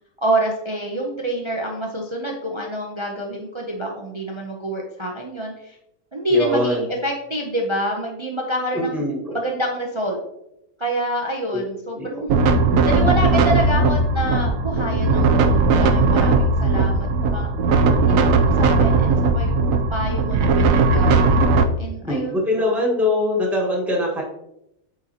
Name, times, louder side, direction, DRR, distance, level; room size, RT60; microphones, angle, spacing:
voice 1, 0.2-5.8 6.1-9.0 9.3-10.2 10.8-12.3 12.8-17.5 18.1-19.6 19.9-21.4 21.8-22.7, right 1 dB, 45° right, 0 dB, 0.4 m, -27 dB
voice 2, 6.3-6.9 8.7-9.4 11.5-11.6 12.0-12.2 22.0-24.2, left 1 dB, ahead, -2 dB, 1.2 m, -22 dB
sound 1, 12.3-21.6, right 3 dB, 70° right, 0.9 m, -17 dB
8.6 x 3.9 x 2.8 m, 0.83 s
omnidirectional pair, 1.6 m